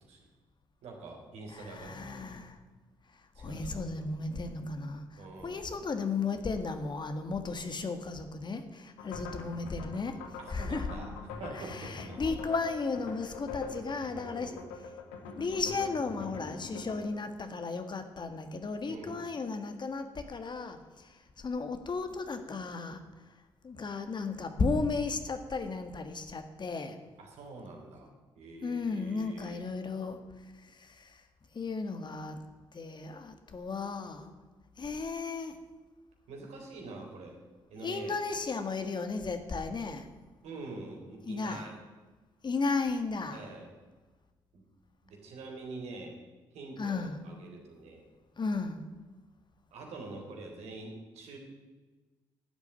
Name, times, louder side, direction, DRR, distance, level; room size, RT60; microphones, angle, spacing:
voice 1, 0.8-1.9 3.4-3.8 5.2-5.6 10.4-11.1 11.4-12.2 14.3-14.5 18.8-19.2 27.2-28.1 28.4-29.6 36.3-37.4 37.7-38.2 40.4-41.7 43.2-43.7 44.5-44.6 45.0-46.1 46.5-48.0 49.7-51.4, right 3 dB, 70° right, 1 dB, 3.7 m, -45 dB
voice 2, 1.5-2.6 3.4-10.1 10.5-10.9 11.5-14.6 15.3-23.0 23.6-27.0 28.6-30.2 30.6-31.2 31.5-32.4 32.7-34.3 34.8-35.6 37.8-40.1 41.3-41.7 42.4-43.5 46.8-47.2 48.4-48.8, left 4 dB, 40° left, 8 dB, 1.8 m, -35 dB
sound 1, 9.0-17.0, left 4 dB, 80° left, 1.8 m, -44 dB
11.5 x 8.1 x 9.0 m, 1.3 s
hypercardioid pair, 45°, 12 cm